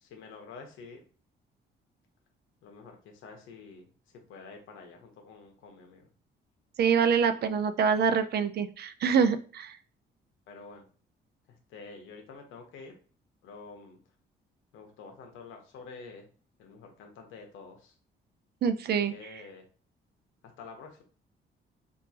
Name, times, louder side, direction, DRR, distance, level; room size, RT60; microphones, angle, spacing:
voice 1, 0.0-1.0 2.6-3.9 4.3-6.1 10.5-10.8 11.5-12.9 13.4-14.0 14.7-16.3 16.6-18.0 19.1-19.7 20.4-21.0, left 4 dB, 85° left, 3 dB, 1.0 m, -48 dB
voice 2, 6.8-9.8 18.6-19.1, right 6 dB, 55° right, 10 dB, 0.4 m, -25 dB
3.6 x 2.6 x 2.8 m, 0.40 s
cardioid pair, 90°, 20 cm